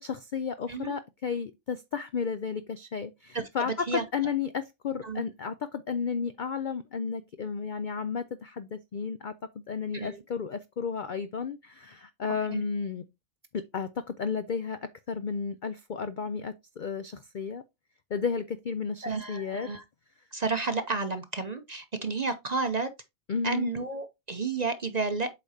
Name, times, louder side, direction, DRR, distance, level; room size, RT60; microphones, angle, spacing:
voice 1, 0.0-9.3 9.7-13.0 13.5-17.6 18.1-19.7 23.3-23.7, left 6 dB, 60° left, 0.5 m, -33 dB
voice 2, 3.3-4.0 5.0-5.3 9.9-10.2 12.5-12.6 19.0-19.8 20.3-22.9 23.4-25.3, right 4 dB, 40° right, 0.7 m, -31 dB
8.0 x 5.1 x 2.7 m
omnidirectional pair, 1.4 m